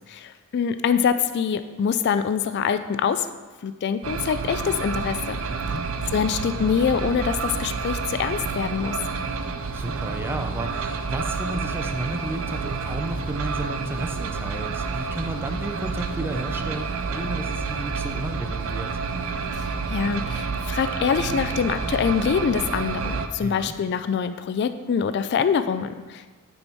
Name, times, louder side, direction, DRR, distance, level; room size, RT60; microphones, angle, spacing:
voice 1, 0.1-3.3 3.6-5.4 6.1-9.0 19.5-26.2, left 7 dB, 50° left, 11 dB, 0.3 m, -25 dB
sound 1, 4.0-23.3, right 4 dB, 65° right, 0.5 m, -29 dB
voice 2, 5.5-5.8 9.7-19.0 23.4-23.7, right 1 dB, 10° right, 4 dB, 0.5 m, -32 dB
8.7 x 4.3 x 4.5 m, 1.3 s
head